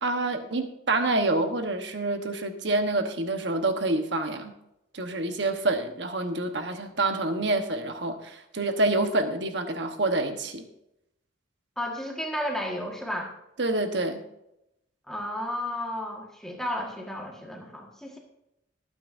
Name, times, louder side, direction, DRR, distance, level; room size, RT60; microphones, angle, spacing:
voice 1, 0.0-4.5 4.9-10.7 13.6-14.2, right 2 dB, 60° right, 6 dB, 1.2 m, -27 dB
voice 2, 11.8-13.3 15.1-18.2, left 1 dB, 5° left, -1 dB, 1.6 m, -33 dB
19.5 x 9.1 x 2.6 m, 0.85 s
head